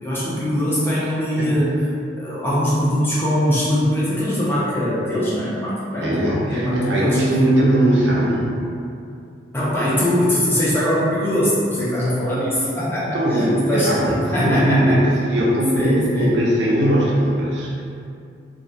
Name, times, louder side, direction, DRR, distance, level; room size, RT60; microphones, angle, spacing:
voice 1, 0.0-1.7 2.2-7.2 9.5-15.0 15.7-16.4, equal, 15° left, -9 dB, 0.5 m, -21 dB
voice 2, 6.0-8.6 13.0-17.8, right 1 dB, 80° right, -5 dB, 0.5 m, -20 dB
2.3 x 2.1 x 2.6 m, 2.4 s
head